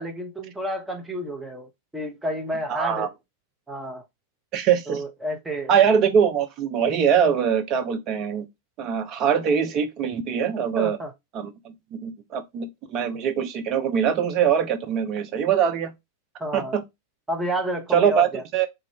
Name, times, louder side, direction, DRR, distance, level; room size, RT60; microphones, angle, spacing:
voice 1, 0.0-3.1 3.7-4.0 4.9-5.7 10.8-11.1 16.4-16.7 17.3-18.4, equal, 10° right, 1.0 m, -30 dB
voice 2, 2.7-3.1 4.5-5.0 5.7-8.5 8.8-11.0 11.3-15.9 16.5-16.8 17.9-18.7, right 8 dB, 35° right, 0.7 m, -23 dB
3.4 x 2.5 x 3.5 m
figure-of-eight pair, 90°, 0 cm